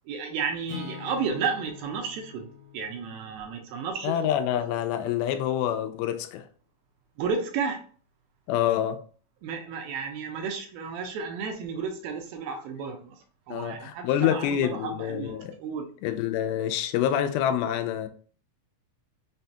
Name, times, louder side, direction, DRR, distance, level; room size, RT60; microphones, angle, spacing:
voice 1, 0.1-2.5 2.7-4.2 7.2-7.8 9.4-13.2 13.5-15.9, right 5 dB, 80° right, 2.4 m, -32 dB
Acoustic guitar / Strum, 0.7-4.7, left 6 dB, 50° left, 1.3 m, -45 dB
voice 2, 4.0-6.4 8.5-9.0 13.5-15.5 16.0-18.1, left 10 dB, 90° left, 2.4 m, -27 dB
6.0 x 2.2 x 2.7 m
omnidirectional pair, 4.3 m